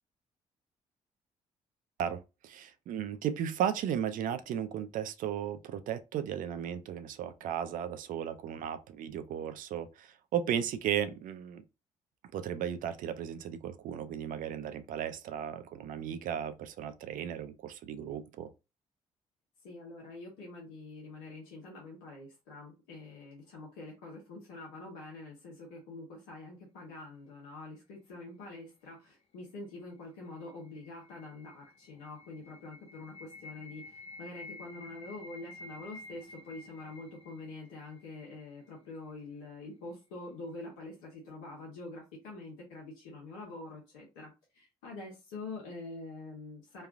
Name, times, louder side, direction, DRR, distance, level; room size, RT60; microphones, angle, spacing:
voice 1, 2.0-11.6 12.3-18.5, right 9 dB, 65° right, 0.4 m, -35 dB
voice 2, 19.6-46.9, left 2 dB, 90° left, 0.8 m, -46 dB
sound 1, 30.0-39.0, left 2 dB, 40° left, 0.6 m, -51 dB
3.2 x 2.3 x 2.4 m
hypercardioid pair, 50°, 15 cm